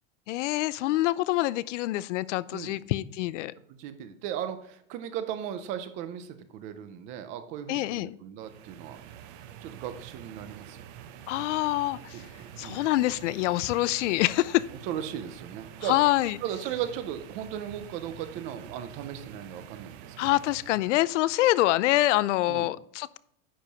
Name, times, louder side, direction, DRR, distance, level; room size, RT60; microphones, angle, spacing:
voice 1, 0.3-3.5 7.7-8.1 11.3-12.2 12.6-14.6 15.9-16.4 20.2-23.2, left 16 dB, 70° left, 20 dB, 0.5 m, -26 dB
voice 2, 3.7-9.0 9.6-10.8 12.1-12.8 14.8-16.0 16.4-20.4 22.5-22.7, right 10 dB, 20° right, 10 dB, 0.4 m, -37 dB
sound 1, 8.4-21.0, right 9 dB, 45° right, 0.8 m, -47 dB
10.0 x 4.6 x 5.2 m, 0.70 s
supercardioid pair, 175°, 38 cm